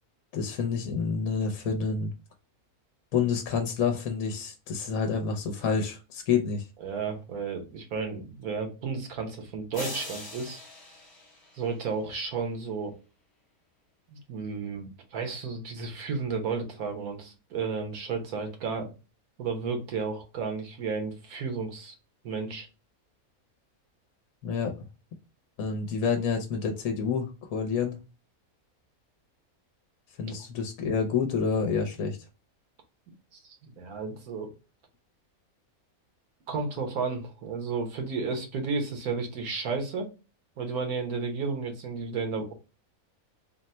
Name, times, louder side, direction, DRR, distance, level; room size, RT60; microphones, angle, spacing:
voice 1, 0.3-2.1 3.1-6.7 24.4-24.8 25.6-28.0 30.2-32.2, left 5 dB, 70° left, 5 dB, 1.1 m, -28 dB
voice 2, 6.8-10.6 11.5-13.0 14.1-18.9 19.4-22.0 22.2-22.7 30.3-30.4 33.3-34.5 36.5-40.1 40.6-42.5, right 4 dB, 80° right, 4 dB, 1.5 m, -33 dB
sound 1, 9.7-12.1, left 2 dB, 25° left, 0.6 m, -42 dB
3.9 x 2.1 x 4.2 m, 0.30 s
omnidirectional pair, 1.5 m